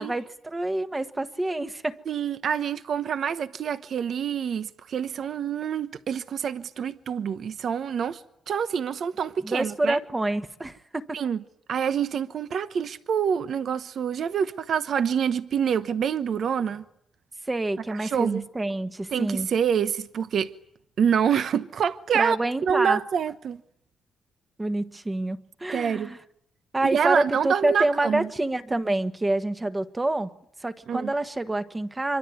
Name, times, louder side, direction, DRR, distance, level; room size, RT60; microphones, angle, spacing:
voice 1, 0.0-2.0 9.4-11.2 17.5-19.5 22.1-23.0 24.6-26.2 26.7-30.3 30.6-32.2, right 2 dB, 15° right, 1.3 m, -27 dB
voice 2, 2.1-8.2 8.5-10.0 11.1-11.4 11.7-16.8 18.0-18.4 19.1-20.5 21.0-22.4 22.6-23.6 25.7-26.1 26.9-28.3 30.9-31.1, right 7 dB, 55° right, 1.0 m, -26 dB
25.5 x 23.5 x 9.4 m
cardioid pair, 125°, 0 cm